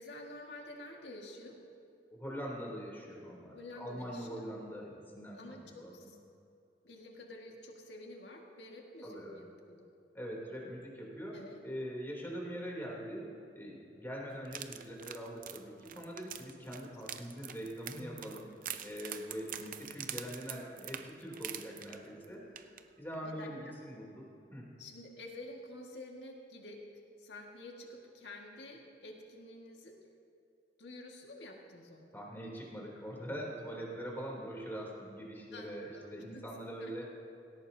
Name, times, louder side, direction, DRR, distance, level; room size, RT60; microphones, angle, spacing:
voice 1, 0.0-1.6 3.5-4.5 5.3-6.2 6.8-9.9 11.3-11.6 17.0-17.2 23.2-23.7 24.8-26.8 27.2-30.0 30.8-32.1 35.5-35.7 35.9-36.1 36.3-36.4 36.8-36.9, left 1 dB, 70° left, 0 dB, 1.9 m, -49 dB
voice 2, 2.1-6.1 9.0-9.4 10.1-11.3 11.6-18.5 18.8-22.4 23.0-24.6 32.1-37.2, equal, 15° left, -3 dB, 3.2 m, -43 dB
sound 1, 14.4-22.2 22.6-22.8 23.1-23.2, right 10 dB, 50° right, 0.6 m, -45 dB
18.5 x 17.5 x 2.8 m, 2.6 s
head